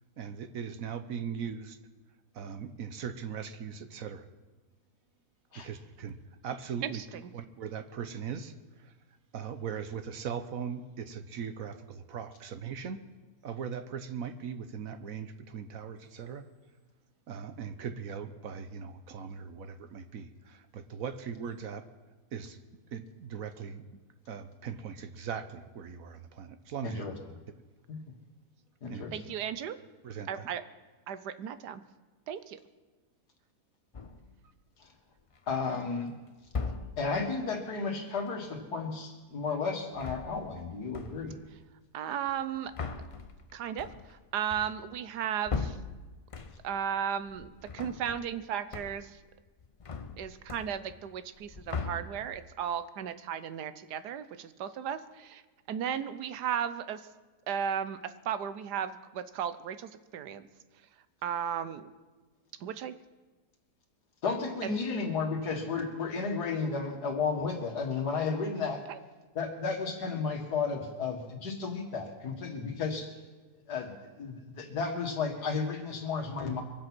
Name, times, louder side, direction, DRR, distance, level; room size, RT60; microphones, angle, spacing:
voice 1, 0.2-1.8 2.3-4.3 5.5-6.2 6.4-8.9 9.3-13.0 13.4-16.5 17.3-21.8 22.3-22.6 22.9-23.8 24.3-27.1 28.9-29.0 30.0-30.5, right 7 dB, 65° right, 10 dB, 1.2 m, -39 dB
voice 2, 26.8-27.1 27.9-28.0 28.8-29.2 34.8-34.9 35.5-36.1 37.0-41.4 64.2-68.9 69.4-73.1 73.7-73.9 74.2-76.6, left 4 dB, 75° left, 3 dB, 2.4 m, -33 dB
voice 3, 29.1-29.8 30.3-30.6 31.1-31.8 32.3-32.6 41.9-42.7 43.1-43.3 43.5-45.8 46.6-49.2 50.2-55.4 55.7-57.0 57.5-60.5 61.2-61.9 62.6-63.0 64.6-64.8 68.9-69.0, right 8 dB, 85° right, 12 dB, 1.4 m, -35 dB
sound 1, 33.9-34.4 35.2-35.7 36.5-37.2 39.8-40.7 40.9-41.5 42.3-46.9 47.2-48.4 48.7-49.2 49.5-51.1 51.4-52.5, left 4 dB, 60° left, 0.3 m, -39 dB
23.5 x 7.9 x 6.1 m, 1.3 s
omnidirectional pair, 1.7 m